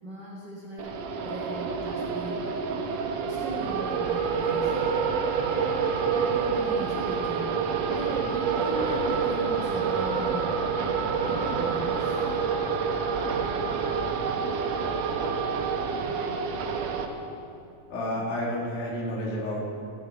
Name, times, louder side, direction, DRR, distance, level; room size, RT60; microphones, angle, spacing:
voice 1, 0.0-2.6 3.2-4.8 5.5-10.8 11.2-12.2, right 2 dB, 45° right, -6 dB, 1.6 m, -38 dB
sound 1, 0.8-17.0, right 5 dB, 85° right, 1.5 m, -27 dB
voice 2, 17.9-19.6, equal, 80° left, -4 dB, 3.9 m, -30 dB
14.5 x 9.6 x 4.3 m, 2.6 s
omnidirectional pair, 4.1 m